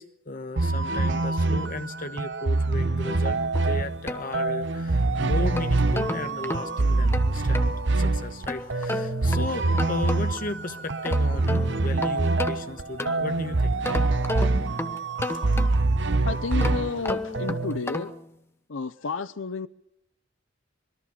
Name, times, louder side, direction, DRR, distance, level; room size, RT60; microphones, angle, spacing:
voice 1, 0.0-13.8 15.3-15.5, left 2 dB, 45° left, 1.2 m, -35 dB
sound 1, 0.6-17.8, right 3 dB, 65° right, 0.9 m, -25 dB
sound 2, 3.6-4.9 5.3-7.8 8.5-10.5 10.9-13.4 13.8-16.0 16.5-18.3, left 1 dB, 15° left, 1.1 m, -33 dB
voice 2, 16.2-18.1 18.7-19.7, left 4 dB, 80° left, 0.7 m, -31 dB
25.0 x 22.0 x 5.8 m
head